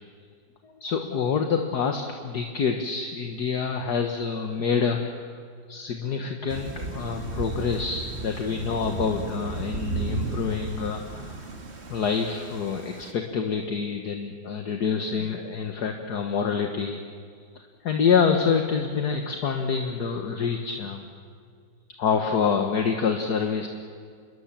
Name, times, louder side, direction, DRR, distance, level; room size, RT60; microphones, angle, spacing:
voice 1, 0.6-5.2 5.7-11.4 11.9-17.0 17.6-21.1 22.0-23.7, left 6 dB, 60° left, 4 dB, 1.8 m, -27 dB
Thunder / Rain, 6.5-13.1, right 3 dB, 35° right, 2.1 m, -34 dB
28.0 x 21.0 x 7.5 m, 2.1 s
omnidirectional pair, 2.0 m